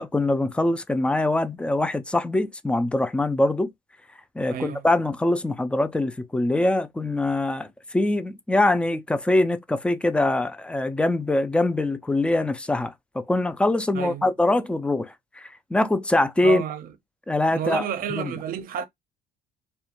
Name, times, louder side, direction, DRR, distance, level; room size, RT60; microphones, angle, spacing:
voice 1, 0.0-3.7 4.4-16.6 17.3-17.8 18.1-18.3, left 2 dB, 5° left, 0.3 m, -23 dB
voice 2, 4.5-4.9 13.9-14.3 16.4-16.9 17.5-18.9, right 8 dB, 55° right, 0.6 m, -30 dB
2.4 x 2.2 x 2.8 m
cardioid pair, 110°, 17 cm